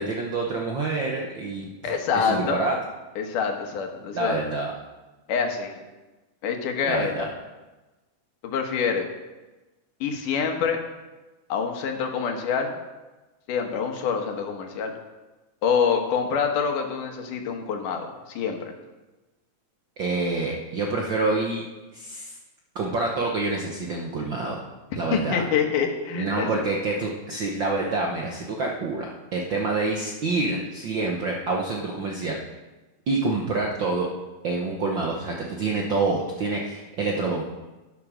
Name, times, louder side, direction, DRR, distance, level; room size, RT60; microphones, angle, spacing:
voice 1, 0.0-2.7 4.1-4.7 6.8-7.3 20.0-21.6 21.9-22.4 22.7-24.6 24.9-25.4 26.1-32.4 33.1-34.1 34.4-37.4, right 3 dB, 65° right, -1 dB, 1.1 m, -27 dB
voice 2, 1.8-2.6 3.2-4.4 5.3-5.7 6.4-7.3 8.4-9.1 10.0-10.8 11.5-12.7 13.5-14.9 15.6-18.7 25.1-26.5, left 6 dB, 90° left, 4 dB, 2.9 m, -26 dB
11.5 x 8.5 x 6.2 m, 1.1 s
omnidirectional pair, 3.6 m